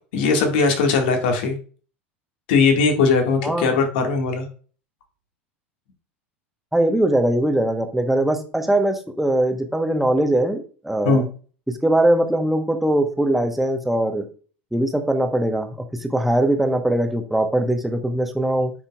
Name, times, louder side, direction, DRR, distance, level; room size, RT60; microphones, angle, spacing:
voice 1, 0.1-1.6 2.5-4.5 11.0-11.3, left 4 dB, 55° left, 4 dB, 1.8 m, -19 dB
voice 2, 3.4-3.8 6.7-11.3 11.8-14.2 14.7-18.7, right 1 dB, 5° right, 6 dB, 1.1 m, -21 dB
8.3 x 5.7 x 2.4 m, 0.38 s
figure-of-eight pair, 80°, 7 cm